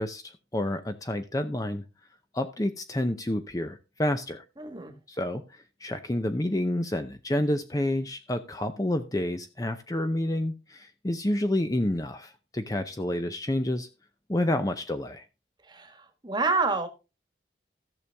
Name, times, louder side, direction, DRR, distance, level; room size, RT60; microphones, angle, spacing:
voice 1, 0.0-1.8 2.3-4.4 5.1-13.9 14.3-15.2, left 1 dB, 20° left, 8 dB, 0.6 m, -29 dB
voice 2, 4.6-4.9 15.6-16.9, right 3 dB, 25° right, 7 dB, 1.4 m, -28 dB
14.0 x 6.8 x 3.4 m, 0.29 s
head